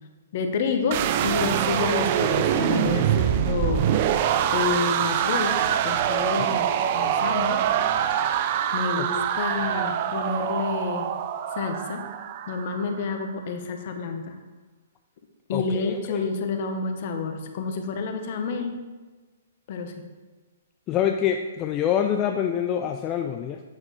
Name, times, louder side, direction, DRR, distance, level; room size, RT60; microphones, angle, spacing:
voice 1, 0.3-3.9 4.5-7.6 8.7-11.1 11.5-12.0 12.5-14.4 15.5-18.8 19.7-20.1, left 4 dB, 50° left, 6 dB, 1.0 m, -29 dB
sound 1, 0.9-13.0, right 10 dB, 45° right, 0.4 m, -24 dB
voice 2, 15.5-16.2 20.9-23.6, left 9 dB, 30° left, 5 dB, 0.4 m, -26 dB
8.5 x 6.4 x 3.2 m, 1.3 s
hypercardioid pair, 130°, 0 cm